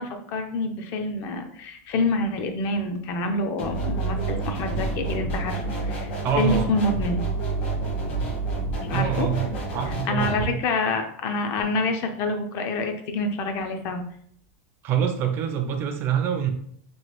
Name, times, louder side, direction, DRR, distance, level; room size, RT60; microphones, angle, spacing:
voice 1, 0.0-6.1 6.4-7.2 8.9-9.3 10.1-14.0, left 2 dB, 35° left, 6 dB, 0.4 m, -27 dB
sound 1, 3.6-10.4, right 3 dB, 55° left, 1.0 m, -29 dB
voice 2, 6.2-6.7 8.9-10.6 14.8-16.5, right 8 dB, 30° right, 6 dB, 0.4 m, -25 dB
3.0 x 2.3 x 2.9 m, 0.64 s
supercardioid pair, 160°, 7 cm